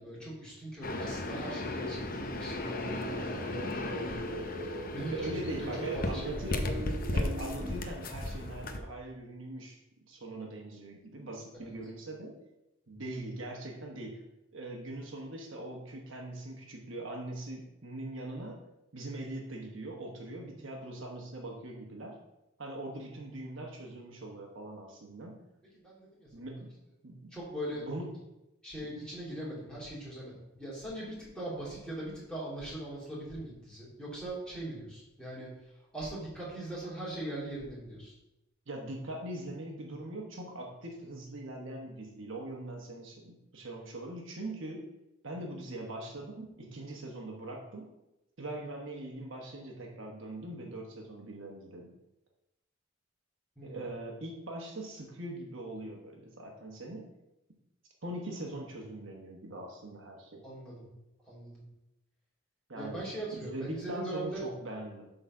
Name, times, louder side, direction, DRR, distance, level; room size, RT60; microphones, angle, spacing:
voice 1, 0.0-4.3 4.6-5.6 5.9-6.8 11.6-11.7 25.7-26.4 27.3-27.9 28.6-38.1 53.6-53.8 60.4-60.9 61.2-61.6 62.8-64.5, right 1 dB, 5° left, -7 dB, 2.9 m, -41 dB
sound 1, 0.8-8.8, left 1 dB, 40° left, 0.7 m, -36 dB
sound 2, 2.7-7.7, right 2 dB, 35° right, 1.0 m, -42 dB
voice 2, 5.0-6.8 7.1-9.8 10.0-12.4 12.9-14.2 14.5-18.6 18.9-22.2 22.6-25.4 26.3-26.7 27.0-27.3 27.7-28.1 38.7-44.9 45.2-47.9 48.4-52.0 53.6-57.1 58.0-60.4 62.7-63.0 63.4-65.1, right 1 dB, 60° right, 0 dB, 1.1 m, -41 dB
8.1 x 3.9 x 5.9 m, 0.92 s
head